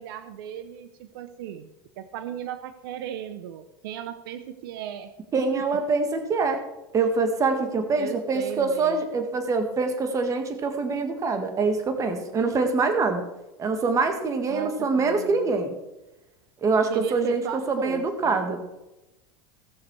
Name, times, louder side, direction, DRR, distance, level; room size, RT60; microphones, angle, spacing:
voice 1, 0.0-1.7 2.0-5.1 5.5-5.7 8.0-9.0 14.5-15.5 16.9-18.4, right 9 dB, 80° right, 10 dB, 0.9 m, -36 dB
voice 2, 5.3-6.6 6.9-13.2 13.6-15.7 16.6-18.6, right 4 dB, 30° right, 7 dB, 1.8 m, -24 dB
17.5 x 6.7 x 4.8 m, 0.99 s
supercardioid pair, 125°, 12 cm